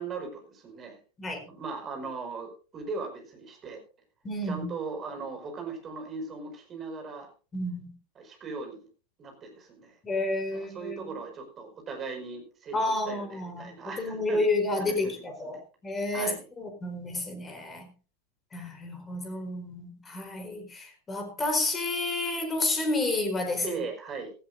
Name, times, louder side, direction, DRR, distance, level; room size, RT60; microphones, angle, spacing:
voice 1, 0.0-1.0 1.5-3.8 4.5-7.3 8.2-8.9 9.2-10.0 10.5-14.4 14.8-15.6 16.1-16.5 23.6-24.3, right 4 dB, 25° right, 5.3 m, -39 dB
voice 2, 4.2-4.7 7.5-7.9 10.0-11.1 12.7-17.9 18.5-23.8, left 2 dB, 15° left, 4.2 m, -30 dB
16.0 x 15.5 x 2.6 m
figure-of-eight pair, 90°, 0 cm